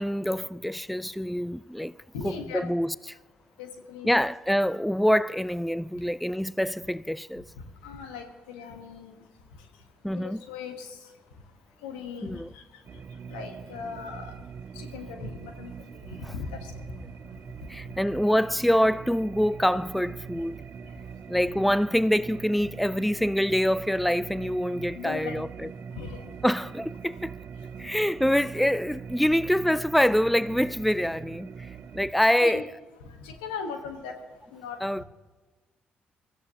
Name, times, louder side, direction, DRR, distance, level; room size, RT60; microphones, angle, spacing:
voice 1, 0.0-2.0 2.2-3.2 4.0-7.4 10.0-10.4 12.2-12.5 16.2-16.3 17.7-20.6 21.3-25.7 26.4-27.3 27.8-32.6 34.8-35.0, equal, ahead, 0.4 m, -25 dB
voice 2, 2.1-2.7 3.6-4.1 7.8-9.2 9.5-9.6 10.1-11.1 11.8-12.8 13.3-14.3 14.7-17.0 20.8-20.9 24.9-25.4 25.9-26.4 32.4-32.6 33.0-34.1 34.5-35.0, left 5 dB, 90° left, 1.3 m, -39 dB
sound 1, 12.8-32.1, right 7 dB, 50° right, 0.6 m, -42 dB
23.0 x 13.5 x 2.9 m
hypercardioid pair, 50°, 5 cm